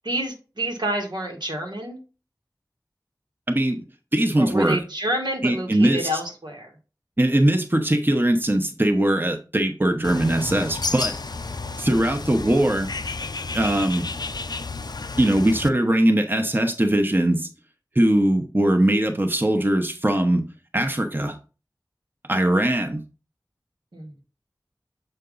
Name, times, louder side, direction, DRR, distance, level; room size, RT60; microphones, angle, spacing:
voice 1, 0.0-2.0 4.4-6.7 12.3-12.6 23.9-24.2, right 1 dB, 80° right, 1.6 m, -29 dB
voice 2, 3.5-3.8 4.1-4.8 5.4-6.1 7.2-11.1 11.8-12.9 13.5-14.1 15.2-17.5 17.9-20.5 20.7-21.4 22.3-23.0, right 1 dB, 25° right, 0.9 m, -21 dB
Bird, 10.0-15.7, left 3 dB, 65° left, 0.4 m, -31 dB
6.9 x 4.4 x 3.9 m
wide cardioid pair, 45°, 7 cm